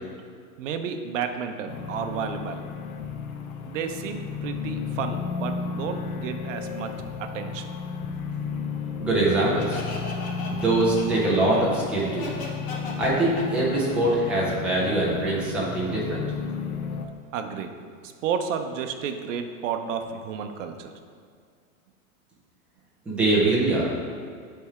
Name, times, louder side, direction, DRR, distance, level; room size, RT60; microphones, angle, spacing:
voice 1, 0.6-2.6 3.7-6.9 7.2-7.7 17.3-17.7 18.0-20.9, right 7 dB, 60° right, 6 dB, 0.7 m, -31 dB
sound 1, 1.7-17.1, left 5 dB, 70° left, 0.8 m, -33 dB
voice 2, 9.0-9.8 10.5-12.3 13.0-16.2 23.1-23.9, right 2 dB, 5° right, -7 dB, 0.4 m, -23 dB
Laughter, 9.6-15.2, left 3 dB, 40° left, 1.1 m, -38 dB
8.4 x 3.4 x 4.8 m, 2.1 s
supercardioid pair, 165°, 44 cm